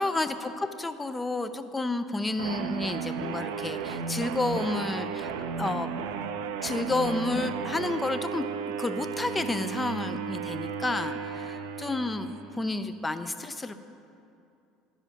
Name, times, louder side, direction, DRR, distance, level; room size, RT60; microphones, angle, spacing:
voice 1, 0.0-5.3 5.6-5.9 6.6-8.4 8.8-13.7, left 2 dB, 15° left, 9 dB, 0.5 m, -30 dB
sound 1, 2.4-12.6, right 6 dB, 75° right, 0.4 m, -34 dB
11.0 x 5.0 x 5.1 m, 2.6 s
hypercardioid pair, 75°, 0 cm